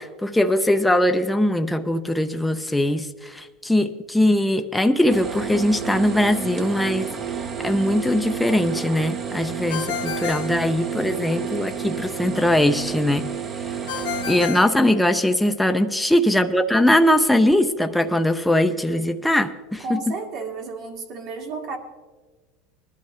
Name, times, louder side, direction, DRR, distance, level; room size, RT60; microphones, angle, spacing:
voice 1, 0.0-7.1 7.6-13.3 14.3-20.0, left 1 dB, 5° left, 7 dB, 0.7 m, -21 dB
sound 1, 5.1-14.5, right 7 dB, 35° right, 1.0 m, -31 dB
Ringtone, 9.7-11.4 13.9-15.6, left 10 dB, 85° left, 1.2 m, -32 dB
voice 2, 14.6-15.2 19.8-21.8, right 4 dB, 55° right, 1 dB, 2.1 m, -33 dB
20.0 x 11.5 x 3.2 m, 1.3 s
supercardioid pair, 110°, 0 cm